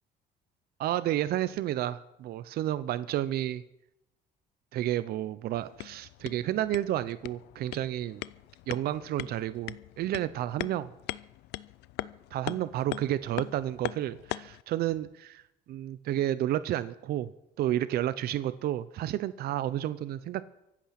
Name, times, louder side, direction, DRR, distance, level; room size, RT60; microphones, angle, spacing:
voice 1, 0.8-3.6 4.7-8.2 8.7-10.9 12.3-15.4 15.7-17.3 17.6-20.4, right 13 dB, 65° right, 14 dB, 0.7 m, -31 dB
sound 1, 5.5-14.6, left 17 dB, 85° left, 0.5 m, -41 dB
24.5 x 8.5 x 5.8 m, 0.87 s
cardioid pair, 110°, 17 cm